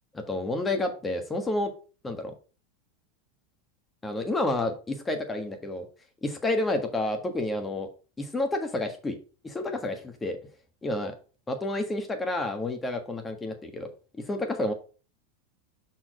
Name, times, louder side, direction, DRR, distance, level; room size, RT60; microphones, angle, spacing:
voice 1, 0.1-1.7 2.0-2.3 4.0-5.9 6.2-7.9 8.2-9.2 9.4-10.4 10.8-11.1 11.5-13.9 14.2-14.7, left 2 dB, 15° left, 6 dB, 1.6 m, -30 dB
5.8 x 4.5 x 5.0 m, 0.36 s
hypercardioid pair, 115°, 0 cm